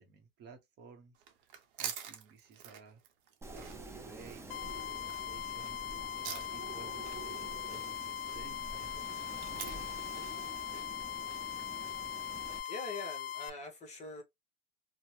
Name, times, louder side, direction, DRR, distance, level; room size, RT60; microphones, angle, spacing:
voice 1, 0.0-3.0 3.5-5.8 6.2-9.7, right 5 dB, 35° right, 0.8 m, -55 dB
sound 1, 1.1-13.4, right 9 dB, 65° right, 0.8 m, -48 dB
Wind, 3.4-12.6, right 2 dB, 10° right, 0.4 m, -48 dB
sound 2, 4.5-13.5, left 10 dB, 75° left, 0.5 m, -40 dB
voice 2, 12.7-14.2, left 3 dB, 25° left, 0.9 m, -43 dB
2.7 x 2.1 x 3.0 m
supercardioid pair, 115°, 29 cm